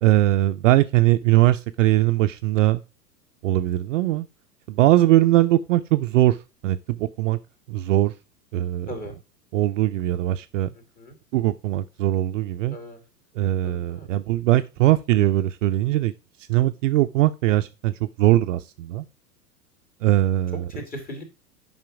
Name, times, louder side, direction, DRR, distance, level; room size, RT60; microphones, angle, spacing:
voice 1, 0.0-2.8 3.4-4.3 4.7-6.4 6.6-7.4 7.7-8.1 8.5-8.9 9.5-10.7 11.3-12.8 13.4-16.1 16.5-19.0 20.0-20.6, right 15 dB, 50° right, 0.5 m, -20 dB
voice 2, 13.6-14.1 20.5-21.2, equal, 15° left, 2.7 m, -37 dB
7.5 x 5.5 x 4.9 m
figure-of-eight pair, 95°, 49 cm